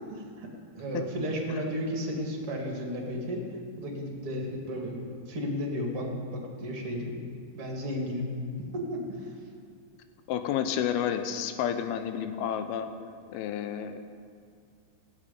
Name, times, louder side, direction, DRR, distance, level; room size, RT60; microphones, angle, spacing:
voice 1, 0.1-0.5 0.7-3.5 3.8-5.0 5.3-7.1 7.5-8.3 8.7-9.3, equal, 40° right, 0 dB, 2.6 m, -33 dB
voice 2, 10.3-12.9 13.3-14.0, left 9 dB, 85° left, 8 dB, 2.8 m, -30 dB
15.5 x 8.8 x 8.5 m, 2.2 s
omnidirectional pair, 4.4 m